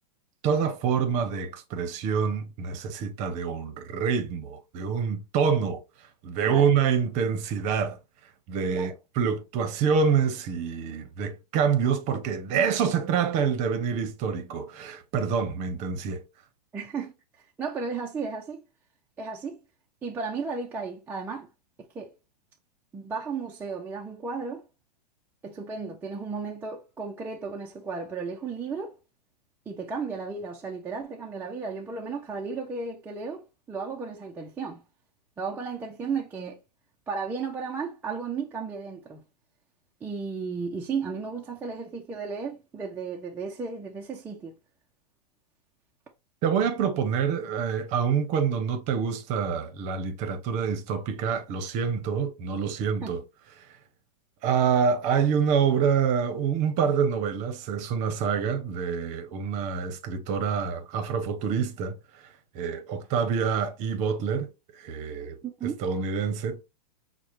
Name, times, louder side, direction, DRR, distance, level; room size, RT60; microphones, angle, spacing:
voice 1, 0.4-5.8 6.2-8.0 8.5-16.2 46.4-53.2 54.4-62.0 62.5-64.5 64.7-65.4 65.8-66.6, right 6 dB, 35° right, 0.8 m, -26 dB
voice 2, 16.7-17.1 17.6-18.6 19.2-19.6 20.0-21.5 21.9-22.1 22.9-24.6 25.4-28.9 29.7-34.8 35.4-36.6 37.1-39.2 40.0-44.5 53.0-53.1 65.4-65.8, right 5 dB, 10° right, 0.4 m, -34 dB
6.2 x 2.1 x 3.0 m
hypercardioid pair, 135°, 21 cm